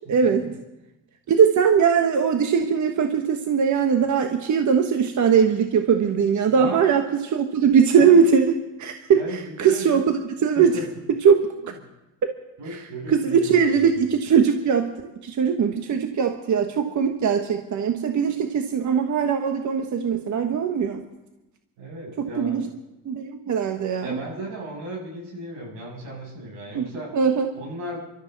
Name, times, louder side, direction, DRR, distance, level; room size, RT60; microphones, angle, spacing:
voice 1, 0.1-0.5 1.3-10.7 11.2-11.5 13.1-21.0 22.2-22.6 23.0-24.2 26.7-26.9 27.1-27.5, right 6 dB, 45° right, 5 dB, 1.3 m, -20 dB
voice 2, 9.1-10.1 10.6-10.9 12.6-14.0 21.8-22.7 24.0-27.1 27.5-28.0, right 1 dB, 80° right, -2 dB, 7.4 m, -35 dB
25.0 x 13.0 x 4.1 m, 0.97 s
supercardioid pair, 90°, 42 cm